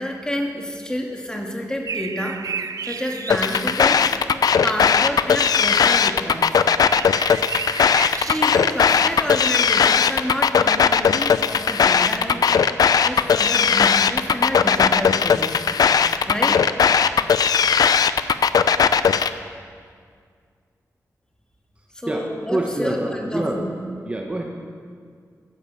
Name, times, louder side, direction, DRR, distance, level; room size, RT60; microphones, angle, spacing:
voice 1, 0.0-2.4 2.8-4.1 4.6-6.6 8.2-15.8 16.3-16.6 21.9-23.7, equal, 10° left, 1 dB, 2.0 m, -29 dB
sound 1, 1.9-4.1 6.8-8.8, right 6 dB, 65° right, 0.5 m, -32 dB
sound 2, 3.3-19.3, left 6 dB, 85° left, 0.5 m, -17 dB
voice 2, 22.1-23.8 24.0-24.4, right 1 dB, 20° right, 0 dB, 1.2 m, -26 dB
16.0 x 10.0 x 7.5 m, 2.1 s
wide cardioid pair, 130°, 6 cm